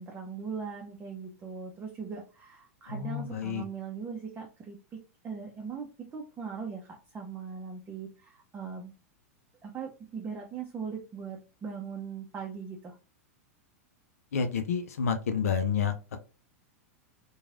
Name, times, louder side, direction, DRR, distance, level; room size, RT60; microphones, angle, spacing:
voice 1, 0.0-8.9 9.6-13.0, right 6 dB, 25° right, 1 dB, 0.6 m, -40 dB
voice 2, 2.9-3.6 14.3-16.2, left 6 dB, 75° left, 7 dB, 0.5 m, -29 dB
3.1 x 2.3 x 2.5 m, 0.32 s
hypercardioid pair, 100°, 8 cm